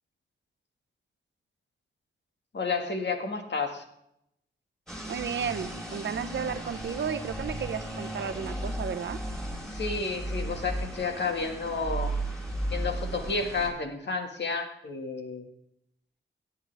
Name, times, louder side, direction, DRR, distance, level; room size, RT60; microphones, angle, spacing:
voice 1, 2.5-3.8 9.6-12.1 12.7-15.5, left 4 dB, 65° left, 4 dB, 1.9 m, -31 dB
sound 1, 4.9-13.7, right 1 dB, ahead, 3.8 m, -35 dB
voice 2, 5.1-9.2, right 7 dB, 70° right, 11 dB, 0.7 m, -33 dB
16.5 x 8.8 x 3.5 m, 0.77 s
cardioid pair, 60°, 20 cm